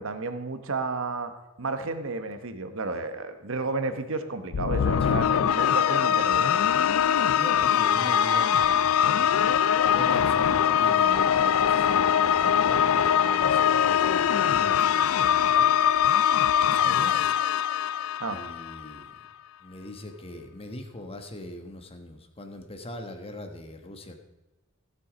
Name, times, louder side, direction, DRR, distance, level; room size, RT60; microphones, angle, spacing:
voice 1, 0.0-1.3 1.6-6.5 16.8-17.1 18.2-18.4, right 3 dB, 65° right, 9 dB, 1.0 m, -32 dB
sound 1, 4.5-18.9, left 8 dB, 75° left, 0.4 m, -22 dB
voice 2, 5.0-5.5 7.0-9.2 9.9-15.7 16.6-17.3 17.7-19.1 19.6-24.2, left 1 dB, 25° left, 6 dB, 1.2 m, -41 dB
15.5 x 7.0 x 5.1 m, 1.1 s
head